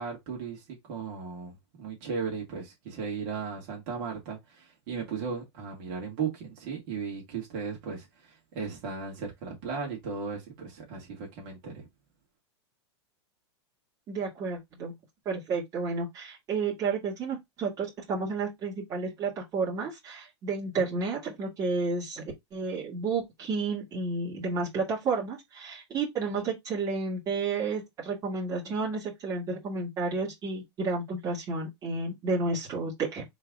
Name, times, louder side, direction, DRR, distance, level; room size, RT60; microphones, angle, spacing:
voice 1, 0.0-11.9, right 5 dB, 40° right, 2.1 m, -36 dB
voice 2, 14.1-14.9 15.3-22.2 22.5-33.2, right 4 dB, 25° right, 2.3 m, -31 dB
3.9 x 3.8 x 3.6 m
supercardioid pair, 160°, 15 cm